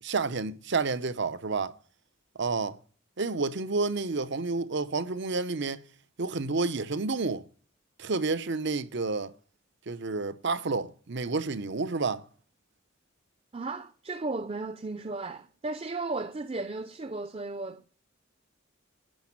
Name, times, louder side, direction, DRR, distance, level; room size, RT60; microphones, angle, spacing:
voice 1, 0.0-1.8 2.4-2.8 3.2-5.8 6.2-7.4 8.0-9.3 9.9-12.2, right 3 dB, 60° right, 0.8 m, -30 dB
voice 2, 13.5-17.9, right 3 dB, 30° right, 0.6 m, -35 dB
10.5 x 6.0 x 7.2 m
head